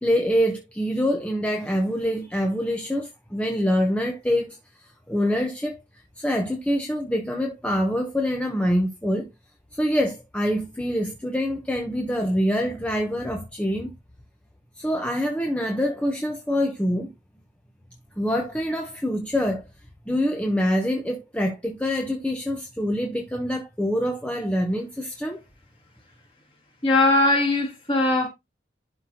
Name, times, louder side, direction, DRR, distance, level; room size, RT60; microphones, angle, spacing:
voice 1, 0.0-4.6 5.1-5.8 6.2-9.3 9.7-13.9 14.8-17.1 18.2-19.6 20.1-25.4, equal, 5° left, 0.8 m, -25 dB
voice 2, 26.8-28.3, left 2 dB, 30° left, 2.6 m, -20 dB
11.5 x 4.2 x 2.8 m
head